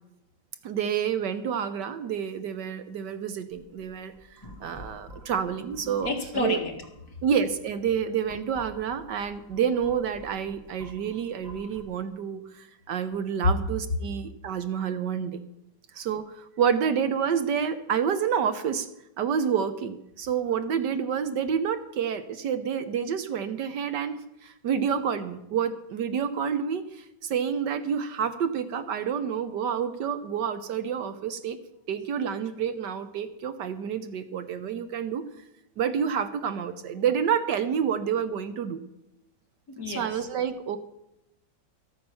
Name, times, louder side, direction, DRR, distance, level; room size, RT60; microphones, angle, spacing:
voice 1, 0.6-4.1 4.6-6.6 7.2-15.4 15.9-18.9 19.2-31.6 31.9-35.2 35.8-38.8 39.9-40.8, right 7 dB, 70° right, 11 dB, 1.4 m, -28 dB
sound 1, 3.5-7.4 7.9-11.8, equal, 10° left, 1.7 m, -49 dB
voice 2, 5.8-6.7 39.8-40.3, left 2 dB, 50° left, 2 dB, 2.3 m, -30 dB
13.5 x 8.8 x 6.9 m, 0.86 s
omnidirectional pair, 2.0 m